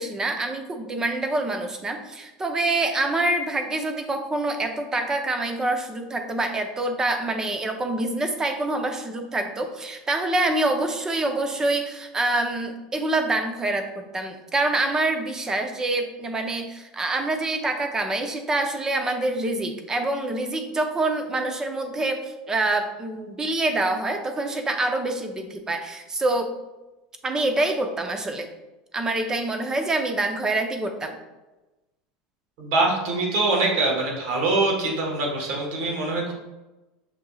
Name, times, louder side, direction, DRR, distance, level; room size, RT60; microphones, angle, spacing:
voice 1, 0.0-26.5 27.2-28.5 28.9-31.1, right 2 dB, 20° right, 5 dB, 0.6 m, -26 dB
voice 2, 32.6-36.3, right 2 dB, 65° right, -2 dB, 1.5 m, -23 dB
6.6 x 2.7 x 2.4 m, 1.1 s
supercardioid pair, 110°, 3 cm